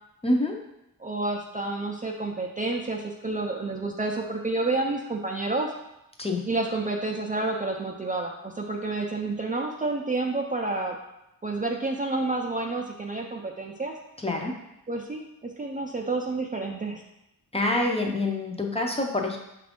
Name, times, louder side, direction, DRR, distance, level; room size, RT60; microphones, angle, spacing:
voice 1, 0.2-0.6 6.2-6.5 14.2-14.6 17.5-19.4, left 2 dB, 15° left, 1 dB, 0.6 m, -26 dB
voice 2, 1.0-5.7 6.5-11.0 11.4-14.0 14.9-17.0, right 2 dB, 25° right, 0 dB, 0.4 m, -29 dB
5.8 x 2.5 x 3.5 m, 0.87 s
wide cardioid pair, 90°, 35 cm